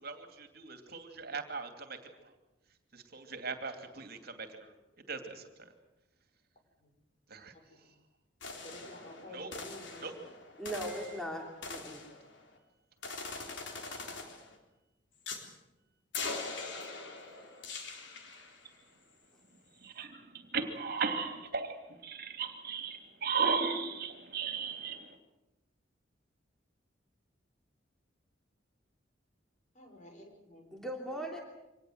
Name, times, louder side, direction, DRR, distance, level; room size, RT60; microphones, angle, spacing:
voice 1, 0.0-2.0 2.9-4.6 5.1-5.5 7.3-7.5 9.3-9.5 10.0-10.1 19.8-21.8 22.0-25.2, right 5 dB, 55° right, 7 dB, 2.8 m, -36 dB
voice 2, 7.5-7.9 8.6-10.3 29.7-30.8, left 1 dB, 40° left, 3 dB, 6.0 m, -52 dB
sound 1, 8.4-12.6 13.0-14.6 15.3-15.5 16.1-18.7, left 4 dB, 70° left, 3.8 m, -43 dB
voice 3, 10.6-12.0 30.7-31.4, right 1 dB, 5° left, 1 dB, 3.1 m, -39 dB
25.5 x 19.5 x 8.0 m, 1.0 s
head